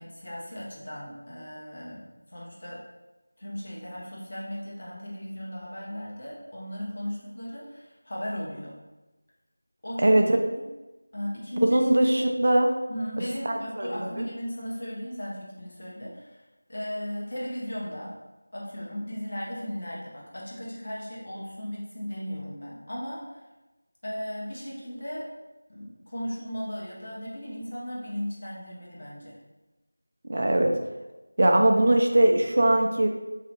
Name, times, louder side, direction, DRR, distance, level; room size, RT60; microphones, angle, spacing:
voice 1, 0.0-2.8 3.4-8.8 9.8-10.7 11.1-12.3 12.9-16.4 16.7-18.2 18.5-23.4 24.0-25.3 25.7-29.4, equal, 45° left, -5 dB, 0.9 m, -36 dB
voice 2, 11.6-12.7 13.5-13.9 30.3-30.7 31.4-33.1, right 1 dB, 45° right, 2 dB, 0.3 m, -20 dB
3.2 x 2.7 x 2.9 m, 1.1 s
figure-of-eight pair, 175°, 0 cm